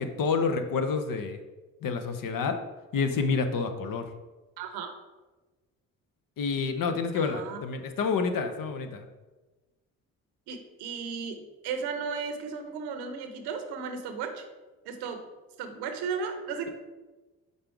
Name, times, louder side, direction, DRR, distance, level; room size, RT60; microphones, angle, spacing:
voice 1, 0.0-1.4 1.8-2.6 2.9-4.1 6.4-9.1, left 5 dB, 55° left, 7 dB, 0.8 m, -28 dB
voice 2, 4.6-5.0 7.1-7.6 10.5-14.5 14.8-15.3 15.6-16.7, right 5 dB, 80° right, 6 dB, 0.8 m, -35 dB
5.4 x 3.9 x 4.6 m, 1.2 s
hypercardioid pair, 45°, 39 cm